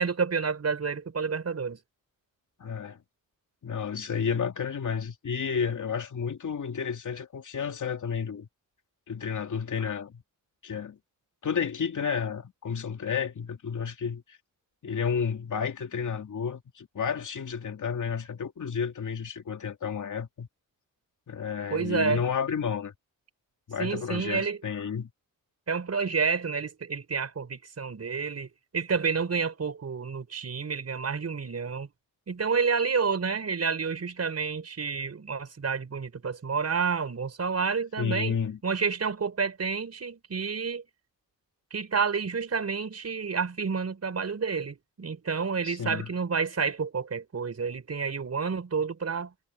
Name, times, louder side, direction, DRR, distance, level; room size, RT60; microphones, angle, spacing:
voice 1, 0.0-1.8 21.7-22.2 23.8-24.6 25.7-31.9 32.3-40.8 41.7-49.3, right 5 dB, 45° right, 5.5 m, -29 dB
voice 2, 2.6-3.0 3.6-8.5 9.1-10.2 10.6-11.0 11.4-14.4 14.8-20.5 21.3-22.9 23.7-25.1 38.0-38.6 45.6-46.1, left 6 dB, 60° left, 2.8 m, -31 dB
cardioid pair, 85°, 35 cm